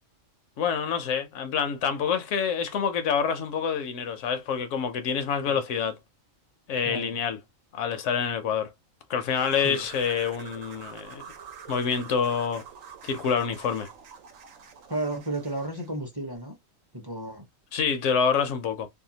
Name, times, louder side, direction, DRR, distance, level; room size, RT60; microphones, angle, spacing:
voice 1, 0.6-6.0 6.7-7.4 7.7-8.7 9.1-11.2 11.7-12.6 13.0-13.9 17.7-18.9, left 7 dB, 70° left, 0.9 m, -27 dB
voice 2, 6.8-7.2 9.6-9.8 14.9-16.5 16.9-17.5, right 1 dB, 25° right, 0.6 m, -33 dB
sound 1, 9.3-16.0, right 7 dB, 75° right, 1.0 m, -46 dB
2.7 x 2.2 x 2.7 m
omnidirectional pair, 1.4 m